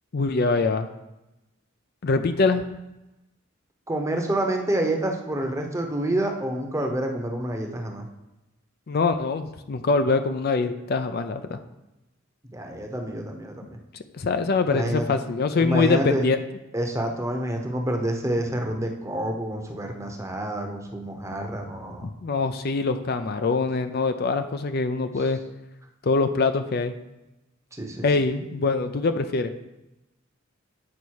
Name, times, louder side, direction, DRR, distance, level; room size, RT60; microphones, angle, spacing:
voice 1, 0.1-0.9 2.0-2.6 8.9-11.6 14.1-16.4 22.0-25.4 26.0-26.9 28.0-29.5, left 4 dB, 50° left, 8 dB, 0.4 m, -24 dB
voice 2, 3.9-8.1 12.5-13.8 14.7-15.2 15.6-16.2 16.7-22.1 27.7-28.1, right 1 dB, 15° right, 2 dB, 0.9 m, -28 dB
8.6 x 5.3 x 4.7 m, 0.96 s
head